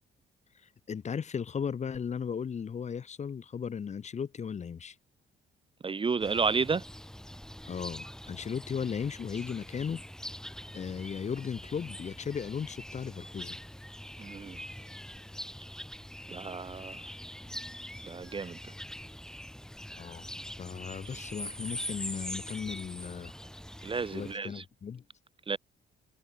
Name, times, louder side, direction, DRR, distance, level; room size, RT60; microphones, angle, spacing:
voice 1, 0.9-5.0 7.7-10.0 10.7-13.6 20.0-20.2 20.6-23.3 24.1-25.0, left 7 dB, 35° left, 0.7 m, -36 dB
voice 2, 5.8-6.8 14.2-14.6 16.3-17.0 18.0-18.6 21.1-21.3 23.8-24.6 25.5-25.6, right 5 dB, 25° right, 0.5 m, -31 dB
sound 1, 6.2-24.3, equal, 5° left, 2.3 m, -43 dB
cardioid pair, 90°, 20 cm